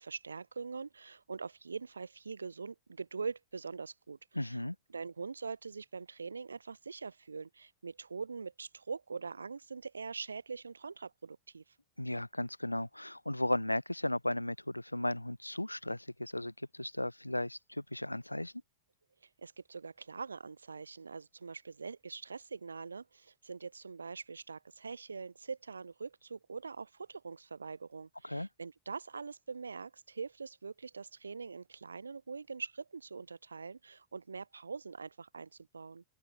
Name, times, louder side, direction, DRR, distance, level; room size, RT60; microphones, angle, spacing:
voice 1, 0.0-4.6 4.9-11.6 19.4-36.0, right 5 dB, 75° right, 7.5 m, -43 dB
voice 2, 4.3-4.8 12.0-18.5 28.2-28.5, left 1 dB, 85° left, 2.0 m, -35 dB
figure-of-eight pair, 90°, 0 cm